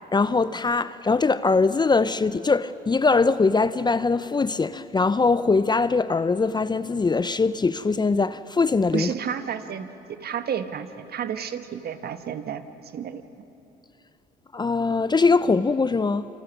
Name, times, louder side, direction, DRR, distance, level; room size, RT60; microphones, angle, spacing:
voice 1, 0.1-9.1 14.5-16.3, left 4 dB, 20° left, 0.6 m, -22 dB
voice 2, 8.9-9.9 10.2-13.2, right 8 dB, 55° right, 1.4 m, -31 dB
28.0 x 25.5 x 6.1 m
supercardioid pair, 65°, 20 cm